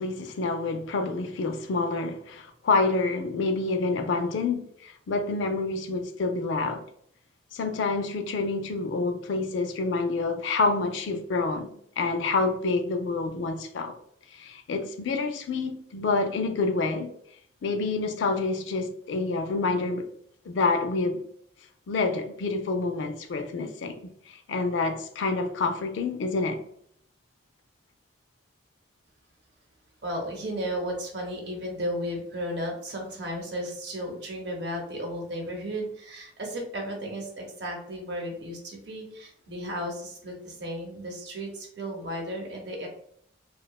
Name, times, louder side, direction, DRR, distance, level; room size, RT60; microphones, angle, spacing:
voice 1, 0.0-6.8 7.5-13.9 14.3-17.1 17.6-20.0 20.5-21.2 21.9-26.6, left 3 dB, 70° left, 0.4 m, -28 dB
voice 2, 30.0-42.9, equal, 60° right, 0.7 m, -34 dB
2.7 x 2.2 x 2.2 m
head